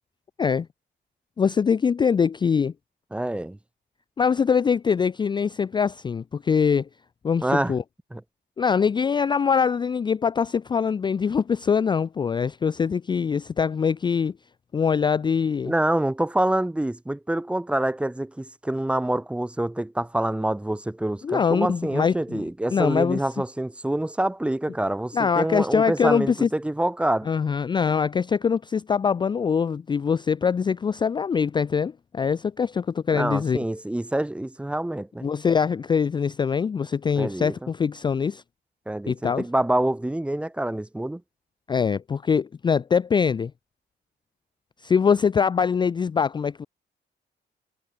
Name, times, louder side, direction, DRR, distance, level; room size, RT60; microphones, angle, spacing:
voice 1, 1.4-2.7 4.2-6.9 7.2-7.8 8.6-14.3 14.7-15.7 21.2-22.4 22.7-23.2 25.1-26.5 27.3-33.6 35.2-38.4 39.1-39.4 41.7-43.5 44.8-46.7, left 6 dB, 25° left, 0.4 m, -23 dB
voice 2, 3.1-3.6 7.4-7.7 8.1-8.2 15.6-27.3 33.1-35.3 37.2-37.7 38.9-41.2, right 1 dB, 5° right, 0.9 m, -26 dB
cardioid pair, 165°, 19 cm